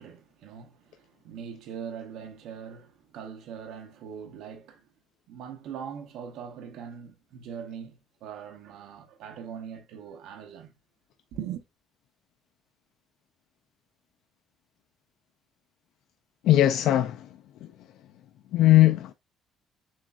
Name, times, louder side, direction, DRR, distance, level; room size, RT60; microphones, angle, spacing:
voice 1, 0.0-4.9 5.3-10.7 11.3-11.6, right 8 dB, 75° right, 0.8 m, -41 dB
voice 2, 16.4-17.3 17.6-17.7 18.5-19.1, left 14 dB, 70° left, 0.3 m, -19 dB
7.3 x 2.5 x 2.3 m
cardioid pair, 145°, 0 cm